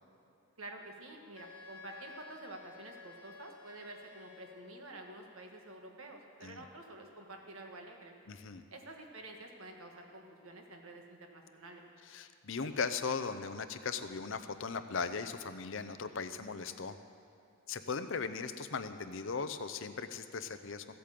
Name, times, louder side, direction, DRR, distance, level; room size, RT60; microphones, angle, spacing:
voice 1, 0.6-8.2 8.7-11.8, right 2 dB, 75° right, 2 dB, 1.6 m, -49 dB
Wind instrument woodwind instrument, 1.3-4.9, left 4 dB, 90° left, 1.3 m, -53 dB
voice 2, 8.3-8.6 12.1-17.0 17.7-20.8, left 5 dB, 60° left, 10 dB, 0.6 m, -38 dB
15.5 x 8.6 x 7.6 m, 2.8 s
head